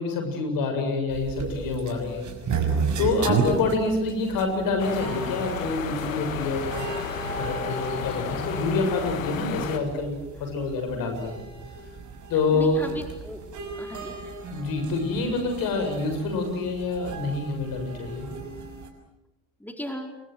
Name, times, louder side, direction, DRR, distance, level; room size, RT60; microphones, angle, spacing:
voice 1, 0.0-2.7 3.0-6.7 7.4-11.4 12.3-12.9 14.5-18.3, left 3 dB, 60° left, 5 dB, 7.1 m, -27 dB
sound 1, 1.1-18.9, right 5 dB, 45° right, 6.5 m, -34 dB
sound 2, 4.8-9.8, left 7 dB, 80° left, 2.0 m, -33 dB
voice 2, 12.5-13.4 13.8-14.2 19.6-20.2, equal, 5° left, 4 dB, 4.6 m, -36 dB
29.0 x 23.5 x 8.0 m, 0.99 s
figure-of-eight pair, 55°, 39 cm